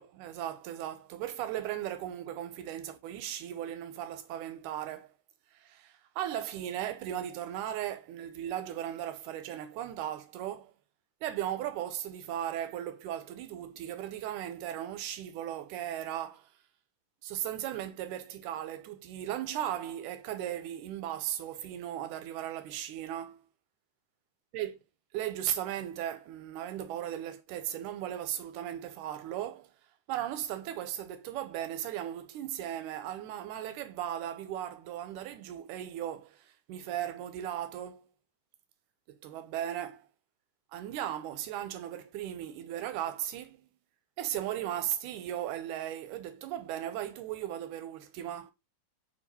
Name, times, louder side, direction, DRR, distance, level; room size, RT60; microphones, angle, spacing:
voice 1, 0.0-5.1 5.5-10.7 11.2-16.5 17.2-23.4 24.5-24.8 25.1-29.7 30.1-38.1 39.2-40.1 40.7-43.6 44.2-48.5, right 11 dB, 90° right, 2.1 m, -37 dB
4.6 x 2.7 x 4.1 m
omnidirectional pair, 3.5 m